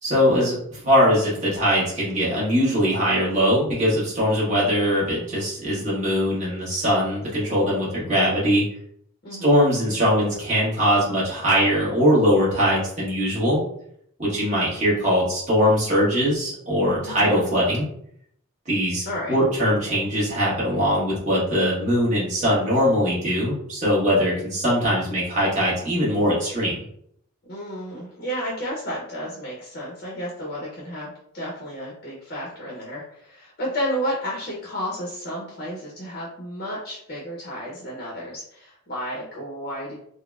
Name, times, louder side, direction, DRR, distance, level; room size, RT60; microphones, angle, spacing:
voice 1, 0.0-8.6 9.4-13.6 14.2-17.9 18.7-26.8, equal, 35° right, -7 dB, 1.2 m, -21 dB
voice 2, 9.2-9.6 17.0-17.4 19.0-19.4 27.5-40.0, equal, 45° left, -4 dB, 0.6 m, -32 dB
3.9 x 2.0 x 2.3 m, 0.69 s
head